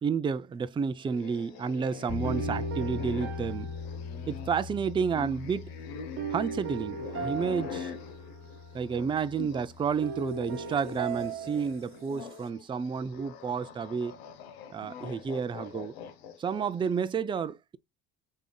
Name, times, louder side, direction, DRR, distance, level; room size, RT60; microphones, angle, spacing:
voice 1, 0.0-3.7 4.3-5.7 6.3-7.9 8.7-14.2 14.7-15.9 16.4-17.8, right 6 dB, 15° right, 0.4 m, -31 dB
sound 1, 1.0-9.8 10.1-16.9, left 6 dB, 85° left, 0.8 m, -44 dB
sound 2, 2.1-11.0, left 5 dB, 20° left, 1.2 m, -41 dB
sound 3, 2.2-4.8 6.2-8.6 10.0-12.5, right 6 dB, 45° right, 0.9 m, -38 dB
5.4 x 3.5 x 2.2 m
hypercardioid pair, 75°, 31 cm